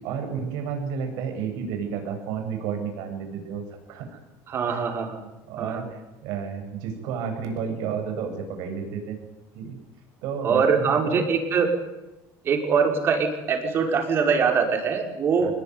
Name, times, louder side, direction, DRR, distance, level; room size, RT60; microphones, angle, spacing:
voice 1, 0.0-4.2 4.7-4.8 5.5-9.2 9.5-9.8 10.2-11.2 15.4-15.5, right 6 dB, 70° right, 4 dB, 8.0 m, -31 dB
voice 2, 4.5-5.3 5.6-5.9 10.4-11.7 12.4-15.5, right 5 dB, 35° right, 4 dB, 5.6 m, -23 dB
25.5 x 21.5 x 9.8 m, 0.97 s
cardioid pair, 155°, 7 cm